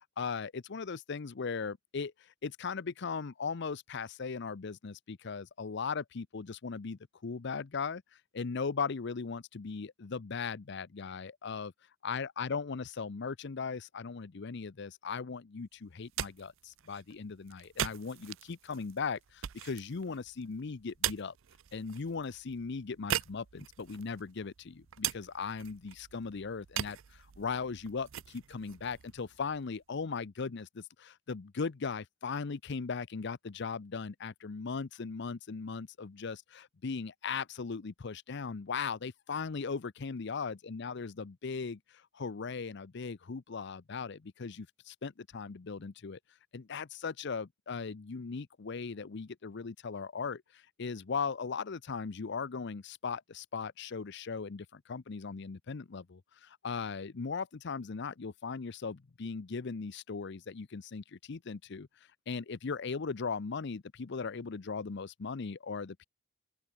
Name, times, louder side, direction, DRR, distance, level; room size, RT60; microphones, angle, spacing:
voice 1, 0.0-2.1 2.4-8.0 8.3-11.7 12.0-21.3 21.7-41.8 42.1-46.2 46.5-50.4 50.8-61.9 62.3-66.0, left 5 dB, 60° left, 0.6 m, -38 dB
sound 1, 15.9-29.8, right 11 dB, 90° right, 0.5 m, -41 dB
open air
head